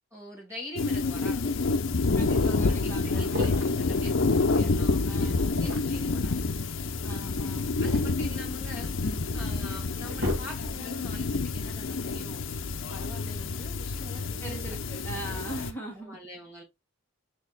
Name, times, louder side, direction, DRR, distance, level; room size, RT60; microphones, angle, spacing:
voice 1, 0.1-1.7 2.3-6.8 7.8-9.0 9.3-12.4 12.9-14.8 15.1-15.4 15.9-16.6, left 1 dB, 15° right, 1.7 m, -45 dB
sound 1, 0.8-15.7, left 3 dB, 65° left, 0.6 m, -28 dB
voice 2, 2.2-3.3 5.0-5.6 7.0-7.7 9.0-9.4 14.4-16.2, right 1 dB, 10° left, 1.5 m, -40 dB
sound 2, 3.1-3.9 5.3-6.2 7.4-8.8 9.4-9.5 9.9-11.0, left 2 dB, 60° right, 1.7 m, -35 dB
6.2 x 3.6 x 2.2 m
head